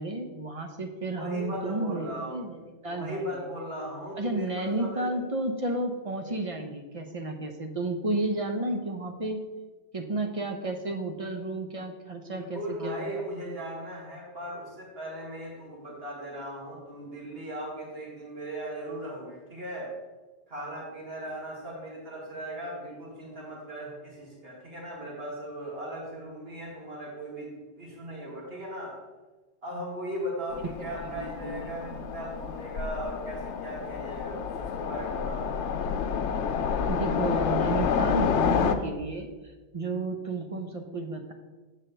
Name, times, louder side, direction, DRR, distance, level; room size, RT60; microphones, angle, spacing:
voice 1, 0.0-3.2 4.2-9.4 9.9-13.1 30.9-32.0 36.9-39.3 39.7-41.3, right 2 dB, 35° right, 4 dB, 0.8 m, -32 dB
voice 2, 1.2-2.4 2.9-5.2 12.3-19.9 20.5-28.9 29.6-35.5, right 1 dB, 60° right, -3 dB, 2.0 m, -38 dB
Train, 30.5-38.7, left 6 dB, 85° left, 0.9 m, -29 dB
7.9 x 4.1 x 6.6 m, 1.2 s
omnidirectional pair, 1.2 m